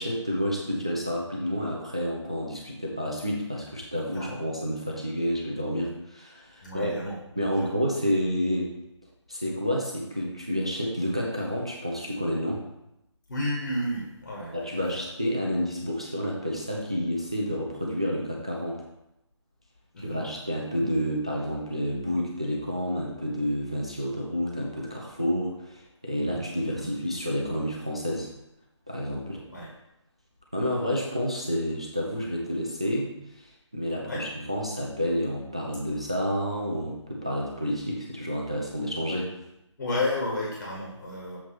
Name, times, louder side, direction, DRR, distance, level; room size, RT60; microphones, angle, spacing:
voice 1, 0.0-6.9 7.4-8.7 9.3-12.6 14.5-18.9 20.0-28.3 28.9-29.4 30.5-39.3, equal, 10° right, -3 dB, 0.3 m, -29 dB
voice 2, 6.6-7.7 13.3-14.8 19.9-20.2 26.6-26.9 29.5-29.7 34.0-34.2 39.8-41.4, left 1 dB, 40° left, -3 dB, 1.6 m, -32 dB
7.0 x 3.0 x 5.9 m, 0.86 s
figure-of-eight pair, 155°, 16 cm